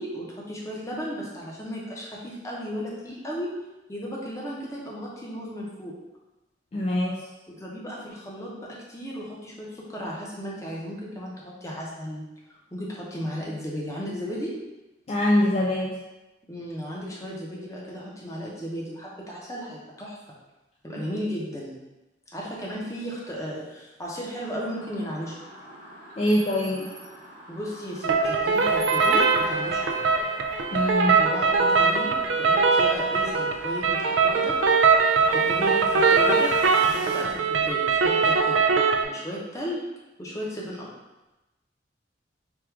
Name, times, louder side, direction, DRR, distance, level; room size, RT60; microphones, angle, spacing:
voice 1, 0.0-3.5 3.9-5.9 7.5-14.5 16.5-20.2 20.8-21.8 22.3-25.3 27.5-30.0 31.2-34.6 34.9-35.0 35.3-36.5 36.8-38.7 39.1-39.9 40.2-40.9, equal, 15° left, -4 dB, 0.7 m, -35 dB
voice 2, 6.7-7.3 15.1-16.0 26.2-27.0 30.7-31.3, left 1 dB, 35° left, -3 dB, 0.3 m, -24 dB
sound 1, 24.4-37.2, right 1 dB, 40° right, 0.8 m, -43 dB
sound 2, 28.0-39.0, right 4 dB, 90° right, 0.4 m, -21 dB
3.5 x 2.4 x 4.5 m, 1.0 s
head